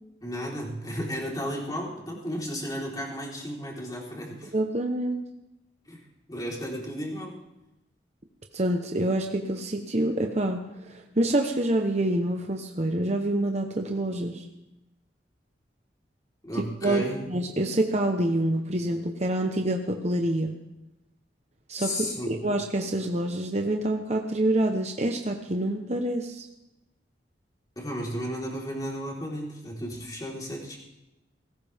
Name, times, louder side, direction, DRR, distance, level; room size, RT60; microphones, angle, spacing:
voice 1, 0.2-4.5 5.9-6.0 6.3-7.4 16.4-17.2 21.8-22.4 27.8-30.8, equal, 20° left, -3 dB, 4.1 m, -33 dB
voice 2, 4.5-5.2 8.5-14.4 16.5-20.5 21.7-26.4, right 1 dB, 40° right, 3 dB, 1.1 m, -27 dB
20.5 x 18.0 x 3.6 m, 0.93 s
head